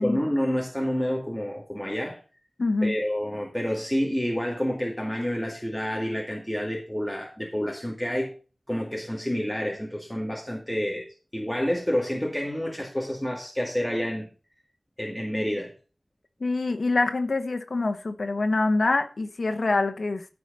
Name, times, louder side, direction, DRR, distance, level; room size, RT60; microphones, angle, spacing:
voice 1, 0.0-2.2 2.8-8.3 8.7-11.1 11.3-14.3 15.0-15.7, equal, 5° left, 2.3 m, -28 dB
voice 2, 2.6-2.9 16.4-20.3, left 3 dB, 80° left, 1.0 m, -25 dB
14.5 x 4.9 x 5.3 m
wide cardioid pair, 60°, 0 cm